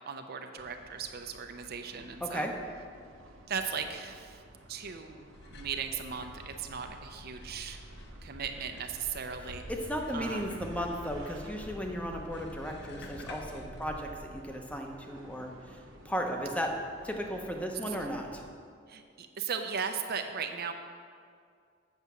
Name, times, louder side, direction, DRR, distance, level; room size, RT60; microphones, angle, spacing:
voice 1, 0.0-2.5 3.5-4.4 4.7-7.8 8.2-9.6 10.1-10.6 17.9-18.0 18.9-20.7, right 6 dB, 55° right, 5 dB, 0.6 m, -37 dB
sound 1, 0.6-18.5, right 1 dB, 85° right, 0.9 m, -51 dB
voice 2, 2.2-2.5 9.7-15.5 16.0-16.7 17.0-18.4, equal, 5° left, 2 dB, 0.9 m, -35 dB
sound 2, 5.3-14.4, left 1 dB, 60° left, 0.8 m, -49 dB
8.1 x 6.1 x 6.8 m, 2.2 s
head